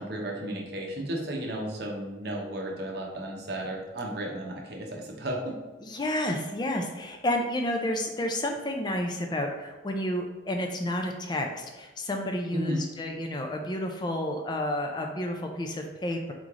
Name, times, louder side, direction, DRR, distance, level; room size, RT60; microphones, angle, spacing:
voice 1, 0.0-5.4 12.5-12.9, right 1 dB, 55° right, 0 dB, 0.8 m, -34 dB
voice 2, 5.8-16.3, left 1 dB, 25° left, 3 dB, 0.3 m, -30 dB
3.7 x 3.1 x 3.6 m, 1.2 s
head